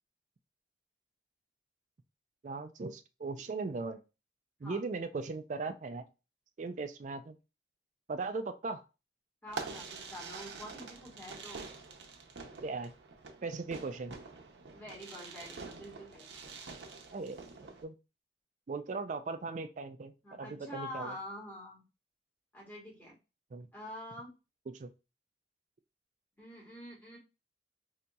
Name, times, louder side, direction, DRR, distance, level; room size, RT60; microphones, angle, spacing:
voice 1, 2.4-4.0 4.6-6.1 6.6-7.4 8.1-8.8 12.6-12.9 13.4-14.2 17.1-17.9 18.7-21.2 23.5-23.7 24.7-24.9, right 3 dB, 45° right, 8 dB, 0.4 m, -38 dB
voice 2, 9.4-11.6 14.7-16.3 20.2-21.8 22.5-23.2 23.7-24.3 26.4-27.2, left 1 dB, 10° left, -5 dB, 1.5 m, -46 dB
Fireworks, 9.5-17.8, right 4 dB, 80° right, 0.7 m, -46 dB
4.0 x 2.7 x 2.3 m, 0.29 s
head